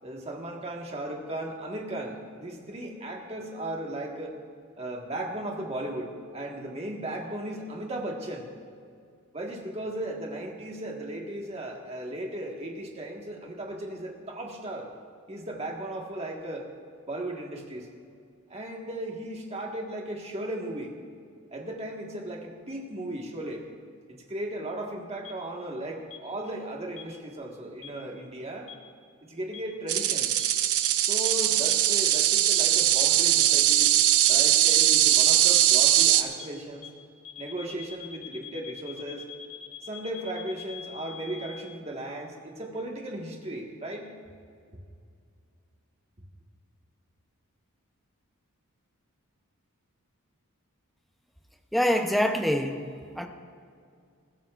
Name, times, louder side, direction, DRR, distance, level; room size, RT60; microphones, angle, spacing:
voice 1, 0.0-4.3 4.8-8.5 9.3-14.9 15.3-16.7 17.1-17.9 18.5-21.0 21.5-23.6 24.1-28.7 29.2-30.3 31.0-33.9 34.3-36.9 37.4-39.2 39.8-44.1, right 1 dB, 30° right, 0 dB, 1.6 m, -36 dB
sound 1, 25.3-25.4 26.1-26.2 27.0-27.1 27.8-27.9 28.7-28.8 29.5-29.6 30.4-30.5 30.8-30.9 31.3-31.4 31.7-31.8 32.1-32.2 32.5-32.6 33.0-33.1 33.4-33.5 33.8-33.9 34.3-34.4 34.7-34.8 35.1-35.2 35.5-35.6 36.0-36.1 36.4-36.5 36.8-36.9 37.3-41.6, left 8 dB, 75° left, 1.8 m, -43 dB
sound 2, 29.9-36.2, right 12 dB, 80° right, 0.7 m, -21 dB
voice 2, 51.7-53.3, equal, ahead, 4 dB, 0.7 m, -25 dB
20.5 x 14.5 x 2.5 m, 2.3 s
head